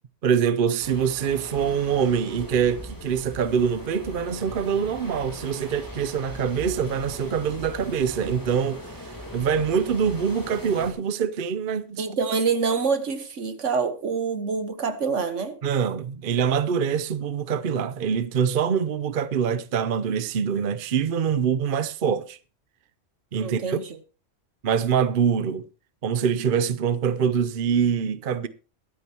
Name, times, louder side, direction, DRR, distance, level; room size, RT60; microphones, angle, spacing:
voice 1, 0.2-12.0 15.6-22.4 23.3-23.8 24.6-25.6 26.0-28.5, right 7 dB, 50° right, 0.8 m, -24 dB
sound 1, 0.8-10.9, equal, 15° left, 3.1 m, -39 dB
voice 2, 12.0-15.6 23.4-24.0, right 5 dB, 75° right, 1.7 m, -26 dB
22.5 x 8.8 x 2.9 m
omnidirectional pair, 1.3 m